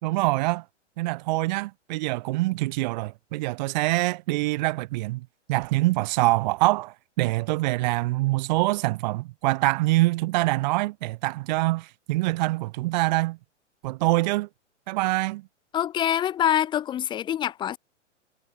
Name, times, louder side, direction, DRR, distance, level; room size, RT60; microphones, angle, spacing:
voice 1, 0.0-0.6 1.0-13.4 13.8-14.5 14.9-15.4, right 20 dB, 35° right, 0.8 m, -25 dB
voice 2, 15.7-17.8, left 10 dB, 15° left, 0.7 m, -25 dB
figure-of-eight pair, 115°, 37 cm